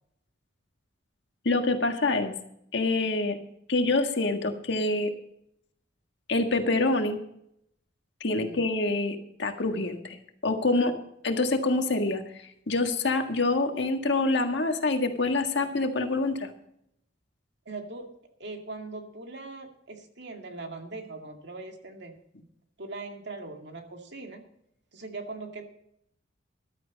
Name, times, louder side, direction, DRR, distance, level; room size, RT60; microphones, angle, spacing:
voice 1, 1.4-2.3 2.7-3.4 3.7-5.1 6.3-7.2 8.2-10.9 11.2-12.2 12.7-16.5, left 2 dB, 65° left, 5 dB, 1.7 m, -26 dB
voice 2, 17.7-18.1 18.4-22.1 22.8-24.5 24.9-25.6, right 3 dB, 60° right, 4 dB, 2.2 m, -40 dB
14.5 x 12.0 x 4.1 m, 0.75 s
head